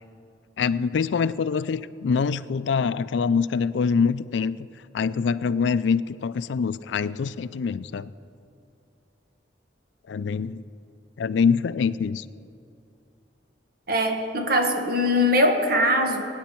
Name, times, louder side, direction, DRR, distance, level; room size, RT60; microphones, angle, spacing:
voice 1, 0.6-4.6 4.9-8.1 10.1-10.6 11.2-12.2, left 5 dB, 70° left, 16 dB, 0.4 m, -24 dB
voice 2, 13.9-16.2, left 1 dB, 60° right, 3 dB, 1.5 m, -21 dB
22.0 x 9.6 x 4.4 m, 2.6 s
head